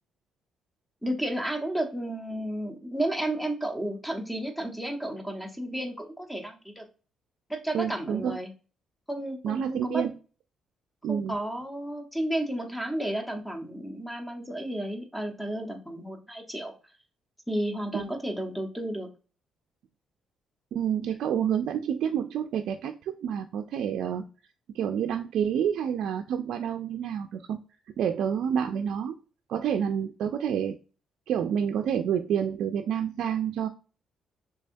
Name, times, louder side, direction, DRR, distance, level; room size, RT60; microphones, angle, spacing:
voice 1, 1.0-6.8 7.5-8.5 9.1-10.0 11.1-16.7 17.5-19.1, right 1 dB, 5° left, 3 dB, 0.9 m, -32 dB
voice 2, 7.7-8.4 9.4-10.1 11.0-11.3 17.9-18.0 20.7-24.3 24.7-27.6 28.0-29.2 29.5-30.8 31.3-33.7, right 8 dB, 75° right, 5 dB, 0.3 m, -28 dB
3.4 x 3.3 x 2.6 m, 0.35 s
cardioid pair, 90°, 0 cm